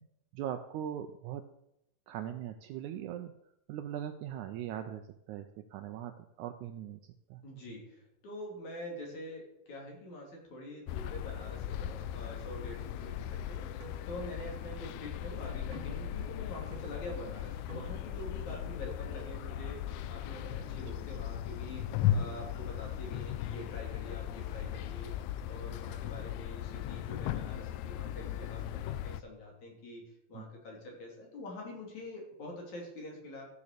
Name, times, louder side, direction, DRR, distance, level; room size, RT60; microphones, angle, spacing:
voice 1, 0.3-1.4 2.1-3.3 3.7-7.0 7.3-7.4 30.3-30.4, right 10 dB, 80° right, 7 dB, 1.9 m, -40 dB
voice 2, 7.4-13.7 14.1-25.1 25.4-30.0 30.3-33.5, left 1 dB, 60° left, -1 dB, 4.4 m, -45 dB
sound 1, 10.9-29.2, left 11 dB, 80° left, 1.8 m, -37 dB
sound 2, 13.8-14.0 14.8-14.9 15.7-15.9 16.7-16.9 17.7-17.9, right 4 dB, 50° right, 2.8 m, -48 dB
14.0 x 6.9 x 6.7 m, 0.80 s
omnidirectional pair, 3.8 m